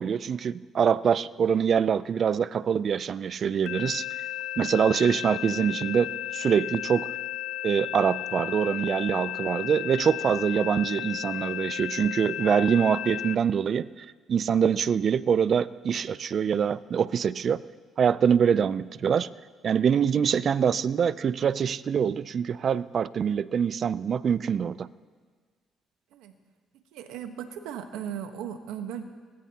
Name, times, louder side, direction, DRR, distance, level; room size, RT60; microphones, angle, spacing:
voice 1, 0.0-4.1 4.6-7.1 7.6-17.6 18.0-19.3 19.6-24.9, right 7 dB, 50° right, 17 dB, 0.4 m, -24 dB
sound 1, 3.7-13.4, left 13 dB, 80° left, 0.4 m, -34 dB
voice 2, 26.9-29.1, right 9 dB, 90° right, 7 dB, 1.2 m, -37 dB
24.0 x 19.0 x 2.9 m, 1.5 s
cardioid pair, 80°, 0 cm